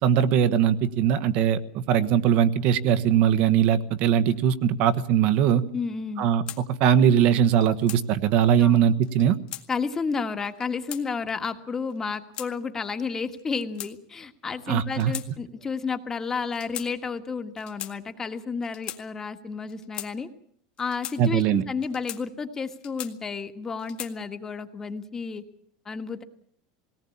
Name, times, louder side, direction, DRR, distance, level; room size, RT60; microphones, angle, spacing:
voice 1, 0.0-5.6 6.2-6.4 6.8-9.4 14.7-15.1 21.2-21.6, right 9 dB, 50° right, 13 dB, 1.3 m, -21 dB
voice 2, 5.7-6.3 8.6-8.8 9.7-20.3 20.8-25.4 25.8-26.2, left 5 dB, 20° left, 8 dB, 1.6 m, -31 dB
sound 1, 6.5-6.6 7.5-8.0 9.0-9.7 10.4-11.0 11.9-12.5 13.4-14.3 14.9-15.3 15.6-15.8 16.5-16.9 17.6-17.9 18.6-19.0 19.7-20.1 20.8-21.2 21.8-22.2 22.7-23.4 23.8-24.2, left 12 dB, 40° left, 1.8 m, -38 dB
19.5 x 18.5 x 8.6 m, 0.64 s
supercardioid pair, 145°, 3 cm